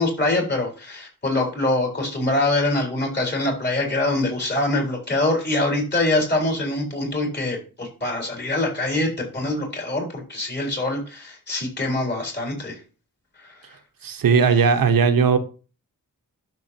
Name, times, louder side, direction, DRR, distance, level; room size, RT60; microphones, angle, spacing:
voice 1, 0.0-12.8 13.4-13.5, left 2 dB, 30° left, 4.3 m, -24 dB
voice 2, 14.0-15.4, right 5 dB, 85° right, 1.1 m, -17 dB
12.0 x 6.4 x 2.9 m
wide cardioid pair, 95°, 34 cm